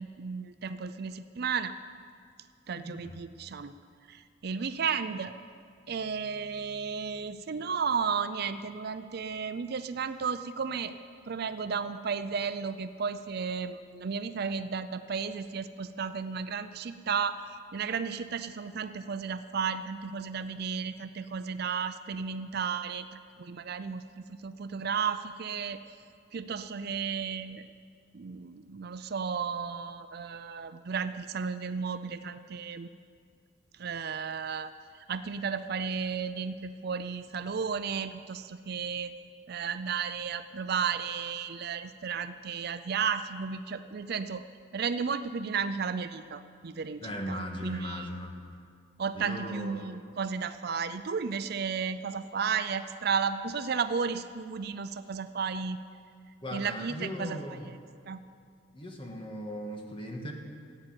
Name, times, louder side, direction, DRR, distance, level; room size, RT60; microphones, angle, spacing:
voice 1, 0.0-1.7 2.7-3.7 4.1-5.3 5.9-10.9 11.3-25.8 26.3-27.7 28.1-32.9 33.8-34.7 35.1-39.2 39.5-44.5 44.7-47.4 47.6-48.1 49.0-55.8 56.5-57.4 58.1-58.2, right 6 dB, 50° right, 11 dB, 0.5 m, -33 dB
voice 2, 2.8-3.2 47.0-48.3 49.1-49.9 56.4-57.7 58.7-60.3, equal, 25° left, 1 dB, 1.7 m, -38 dB
15.0 x 8.9 x 8.9 m, 2.2 s
head